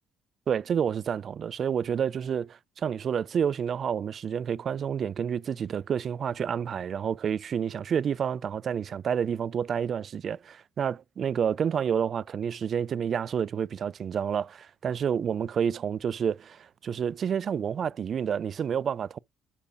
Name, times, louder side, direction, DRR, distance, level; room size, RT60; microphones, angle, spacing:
voice 1, 0.5-19.2, right 7 dB, 50° right, 0.4 m, -29 dB
8.2 x 7.0 x 2.5 m
supercardioid pair, 70°, 0 cm